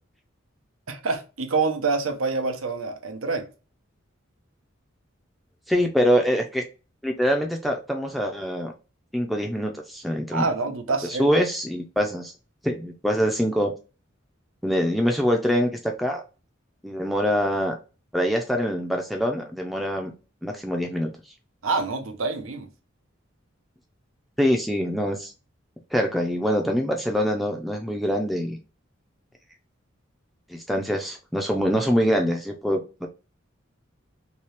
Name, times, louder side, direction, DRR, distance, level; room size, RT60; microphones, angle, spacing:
voice 1, 0.9-3.5 10.3-11.3 21.6-22.7, right 4 dB, 90° right, 0.7 m, -26 dB
voice 2, 5.7-6.6 7.0-8.7 9.1-10.5 11.1-12.3 12.6-13.7 14.6-16.2 16.8-17.8 18.1-20.1 20.4-21.1 24.4-25.3 25.9-28.6 30.5-33.1, equal, ahead, 0.4 m, -24 dB
2.9 x 2.8 x 3.1 m
head